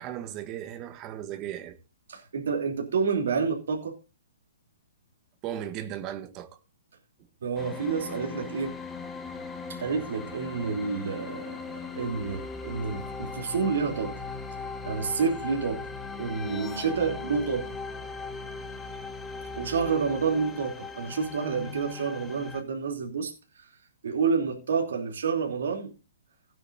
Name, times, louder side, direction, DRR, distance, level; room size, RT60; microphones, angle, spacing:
voice 1, 0.0-1.8 5.4-6.5, right 11 dB, 25° right, 1.2 m, -36 dB
voice 2, 2.1-4.0 7.4-8.8 9.7-14.2 14.8-15.9 16.2-17.7 19.6-23.7 24.0-25.9, right 5 dB, 70° right, 3.0 m, -29 dB
sound 1, 7.6-22.6, left 4 dB, 10° left, 1.4 m, -39 dB
16.5 x 8.9 x 2.7 m
hypercardioid pair, 155°, 0 cm